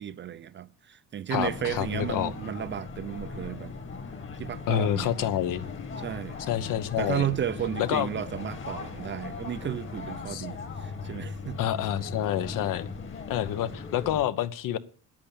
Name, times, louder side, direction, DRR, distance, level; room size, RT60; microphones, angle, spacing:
voice 1, 0.0-3.7 4.4-5.3 6.0-6.4 7.0-11.6, right 10 dB, 35° right, 0.5 m, -33 dB
voice 2, 1.3-2.3 4.7-5.7 6.5-7.3 7.9-8.1 10.3-10.5 11.6-12.9 13.3-14.8, left 11 dB, 65° left, 1.0 m, -28 dB
sound 1, 1.3-14.2, left 4 dB, 35° left, 1.8 m, -38 dB
10.0 x 8.5 x 8.6 m
cardioid pair, 145°, 34 cm